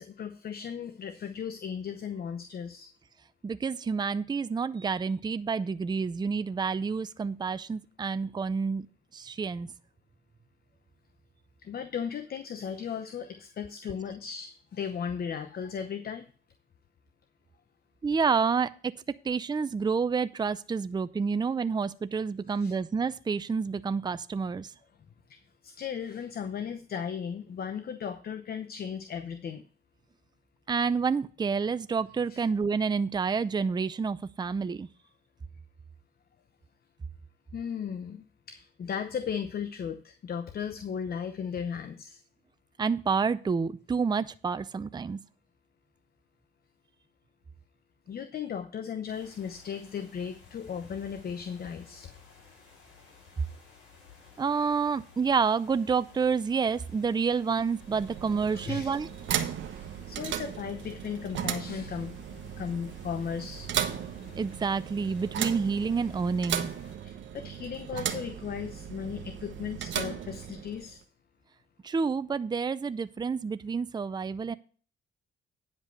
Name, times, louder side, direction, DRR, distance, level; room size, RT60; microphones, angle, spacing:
voice 1, 0.0-2.9 11.6-16.3 22.6-22.7 25.3-29.6 32.3-32.4 37.5-42.2 48.1-52.1 58.5-59.0 59.7-62.1 62.6-63.7 67.0-71.0, left 7 dB, 50° left, 9 dB, 0.9 m, -36 dB
voice 2, 3.4-8.9 9.1-9.7 18.0-18.9 19.2-24.7 30.7-34.9 42.8-45.2 54.4-59.1 64.4-66.7 71.8-74.6, right 5 dB, 20° right, 13 dB, 0.5 m, -29 dB
sound 1, 49.1-67.0, left 5 dB, 70° left, 5.0 m, -55 dB
sound 2, 57.7-71.0, right 9 dB, 70° right, 1.0 m, -36 dB
9.9 x 5.2 x 6.6 m, 0.40 s
cardioid pair, 90°, 20 cm